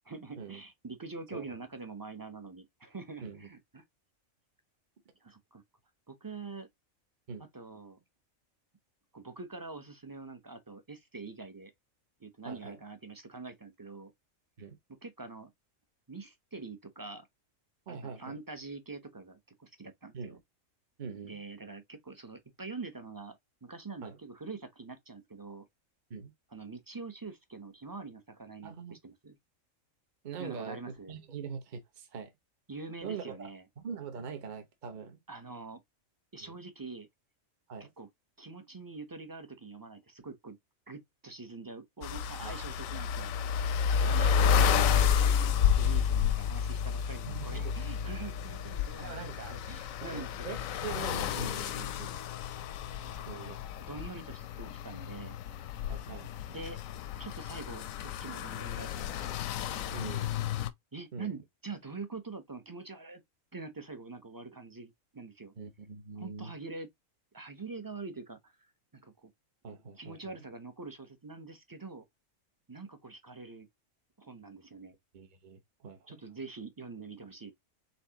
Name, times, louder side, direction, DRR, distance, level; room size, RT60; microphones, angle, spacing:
voice 1, 0.1-3.8 5.2-5.6 6.1-6.7 7.5-8.0 9.1-11.7 12.2-14.1 15.0-15.5 16.1-17.3 17.9-20.4 21.2-25.7 26.5-29.4 30.4-31.2 32.7-33.6 35.3-35.8 36.3-37.1 38.0-38.1 38.4-40.6 40.9-43.3 44.1-50.6 53.0-53.5 53.8-55.4 56.5-56.8 57.2-59.2 59.8-60.3 60.9-63.2 63.5-65.5 66.2-66.9 67.3-68.5 68.9-69.3 70.0-72.0 72.7-73.7 74.2-75.0 76.1-77.5, right 3 dB, 20° right, 0.6 m, -45 dB
voice 2, 12.4-12.8 14.6-14.8 17.9-18.4 20.1-20.4 21.0-21.3 24.0-24.2 26.1-26.3 28.6-29.0 30.2-30.8 31.1-32.3 33.0-33.5 33.8-35.2 36.4-36.6 37.7-37.9 42.4-43.0 44.0-44.6 47.3-47.8 49.0-49.6 50.0-52.2 53.3-53.6 55.9-56.3 59.9-60.3 61.1-61.4 65.6-66.5 69.6-70.4 75.1-76.2, right 6 dB, 40° right, 1.0 m, -43 dB
sound 1, 42.0-60.7, left 7 dB, 90° left, 1.0 m, -31 dB
4.4 x 3.9 x 2.8 m
omnidirectional pair, 1.4 m